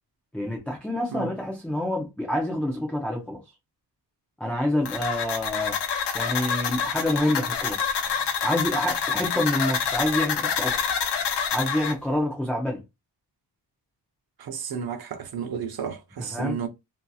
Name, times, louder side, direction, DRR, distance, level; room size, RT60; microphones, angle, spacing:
voice 1, 0.3-3.4 4.4-5.8 6.1-7.8 8.4-10.9 11.5-12.8 16.2-16.6, left 1 dB, 5° left, 0.4 m, -27 dB
sound 1, 4.9-11.9, left 6 dB, 75° left, 0.7 m, -27 dB
voice 2, 14.4-16.7, right 7 dB, 60° right, 0.6 m, -32 dB
2.7 x 2.6 x 2.3 m
wide cardioid pair, 160°, 42 cm